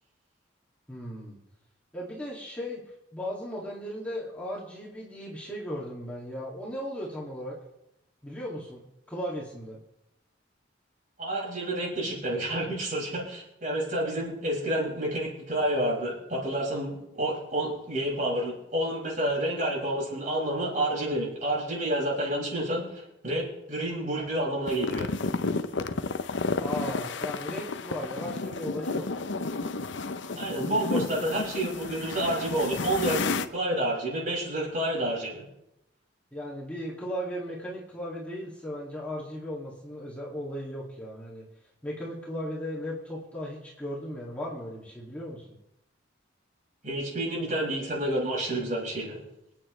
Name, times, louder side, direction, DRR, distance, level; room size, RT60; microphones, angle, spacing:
voice 1, 0.9-1.4 1.9-2.8 3.1-7.6 8.2-8.8 9.1-9.8 26.6-29.1 36.3-41.4 41.8-45.5, equal, 5° left, -6 dB, 2.3 m, -36 dB
voice 2, 11.2-25.1 30.4-35.4 46.8-49.2, right 1 dB, 40° right, -5 dB, 6.1 m, -29 dB
sound 1, 24.7-33.5, left 3 dB, 70° left, 0.7 m, -31 dB
26.5 x 9.2 x 3.2 m, 0.87 s
head